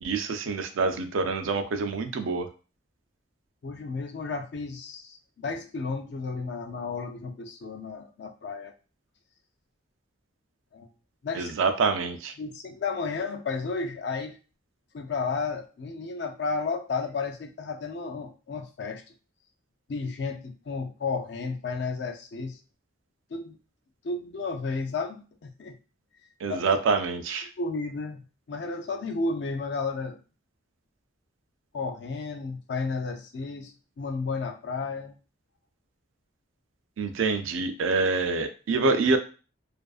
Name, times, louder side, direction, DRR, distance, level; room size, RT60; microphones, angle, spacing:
voice 1, 0.0-2.5 11.3-12.3 26.4-27.5 37.0-39.2, right 4 dB, 85° right, 8 dB, 0.4 m, -26 dB
voice 2, 3.6-8.7 10.7-10.9 11.2-11.5 12.4-14.4 14.9-19.0 19.9-22.6 23.3-23.6 24.0-25.8 26.5-26.7 27.6-28.2 28.5-30.2 31.7-35.1, left 4 dB, 60° left, 5 dB, 0.4 m, -32 dB
2.4 x 2.4 x 2.3 m, 0.35 s
head